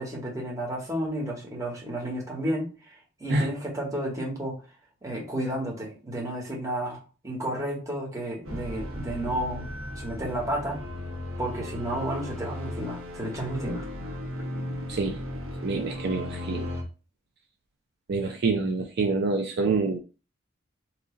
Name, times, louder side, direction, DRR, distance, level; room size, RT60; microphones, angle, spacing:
voice 1, 0.0-2.7 3.2-4.6 5.0-7.0 7.2-9.7 10.0-10.8 11.4-13.9, right 1 dB, 15° right, -3 dB, 1.1 m, -31 dB
sound 1, 8.4-16.8, left 1 dB, 85° right, 1.0 m, -36 dB
voice 2, 15.6-16.7 18.1-20.0, right 3 dB, 50° right, 3 dB, 0.4 m, -26 dB
3.0 x 2.6 x 3.7 m, 0.34 s
head